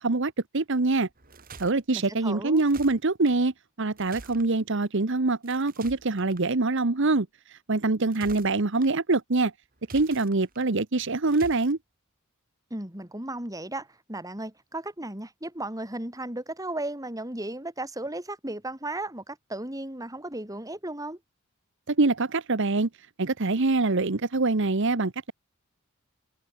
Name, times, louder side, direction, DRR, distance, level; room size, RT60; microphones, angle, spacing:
voice 1, 0.0-1.1 1.6-3.5 3.8-9.5 9.9-11.8 21.9-22.9 23.2-25.3, right 3 dB, 60° right, 1.1 m, -24 dB
sound 1, 1.1-1.7 2.5-3.3 4.0-4.5 5.4-6.4 7.9-8.9 9.8-10.7 11.3-11.7, right 3 dB, 45° right, 2.9 m, -47 dB
voice 2, 1.9-2.6 12.7-21.2, right 1 dB, 15° right, 5.0 m, -35 dB
head